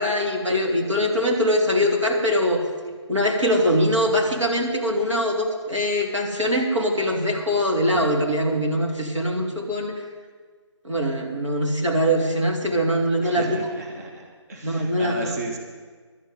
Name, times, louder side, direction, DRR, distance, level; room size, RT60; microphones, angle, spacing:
voice 1, 0.0-2.6 3.1-10.0 10.8-13.6 14.6-15.3, equal, 80° right, 0 dB, 2.9 m, -22 dB
voice 2, 13.2-15.6, right 1 dB, 35° right, 2 dB, 1.4 m, -35 dB
11.5 x 8.2 x 9.3 m, 1.5 s
figure-of-eight pair, 150°, 15 cm